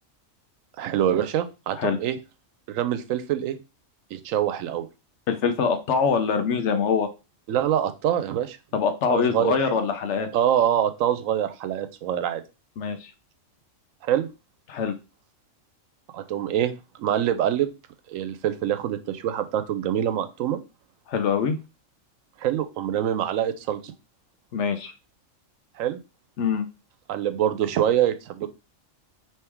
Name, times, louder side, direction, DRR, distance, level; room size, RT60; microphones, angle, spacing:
voice 1, 0.8-2.2 2.7-3.6 4.1-4.9 7.5-8.6 9.1-9.5 10.3-12.4 14.0-14.3 16.1-17.7 18.1-20.6 22.4-23.9 25.8-26.0 27.1-28.5, right 10 dB, 85° right, 10 dB, 1.0 m, -25 dB
voice 2, 5.3-7.1 8.7-10.3 12.8-13.1 14.7-14.9 21.1-21.6 24.5-24.9 26.4-26.7, left 6 dB, 65° left, 8 dB, 0.9 m, -24 dB
3.6 x 3.1 x 4.4 m, 0.29 s
omnidirectional pair, 1.3 m